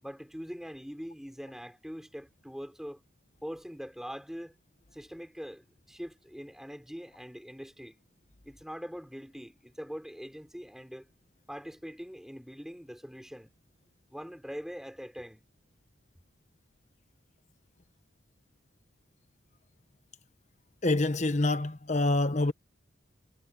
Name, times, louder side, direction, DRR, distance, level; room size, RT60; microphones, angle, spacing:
voice 1, 0.0-3.0 3.4-4.5 4.9-8.0 8.4-11.1 11.5-13.6 14.1-15.5, equal, ahead, 6.1 m, -43 dB
voice 2, 20.8-22.5, left 2 dB, 35° left, 1.1 m, -26 dB
head